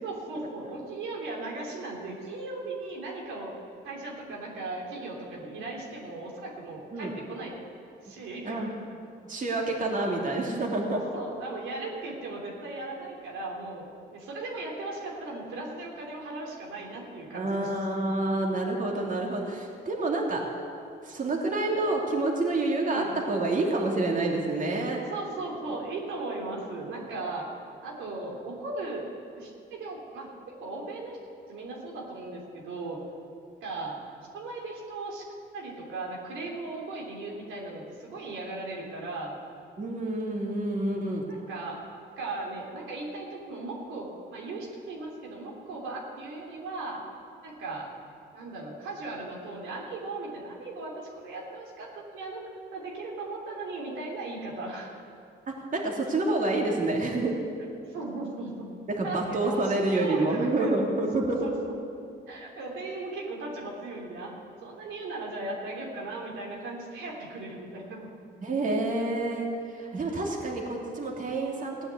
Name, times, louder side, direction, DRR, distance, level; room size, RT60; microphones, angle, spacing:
voice 1, 0.0-3.5 3.8-7.5 8.0-8.6 10.9-17.7 22.9-23.1 25.1-27.5 27.8-29.0 29.4-31.2 31.5-33.0 33.6-34.0 34.3-35.2 35.5-39.3 41.2-41.8 42.2-47.0 47.4-47.9 48.3-52.4 52.7-55.0 57.9-58.7 59.0-60.8 61.1-61.8 62.3-64.3 64.6-68.1, right 2 dB, 90° right, -2 dB, 3.3 m, -37 dB
voice 2, 9.3-11.0 17.3-20.4 21.0-25.1 39.8-41.3 55.7-57.4 58.9-61.4 68.4-71.9, right 2 dB, 40° right, -1 dB, 2.7 m, -28 dB
16.5 x 9.7 x 8.3 m, 2.4 s
cardioid pair, 90°, 20 cm